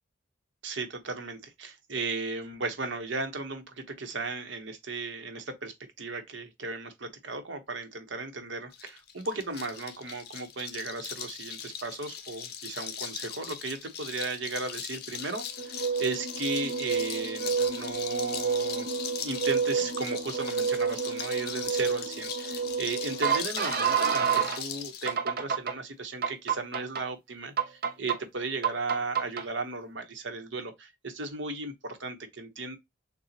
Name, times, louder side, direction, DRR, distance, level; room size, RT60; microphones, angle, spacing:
voice 1, 0.6-18.9 19.2-32.8, right 3 dB, 70° right, 1.1 m, -36 dB
sound 1, 8.7-25.1, left 8 dB, 55° left, 0.8 m, -40 dB
sound 2, 15.6-24.6 25.1-25.7 26.2-27.0 27.6-28.2 28.6-29.4, right 6 dB, 50° right, 0.7 m, -29 dB
6.8 x 2.4 x 2.9 m
head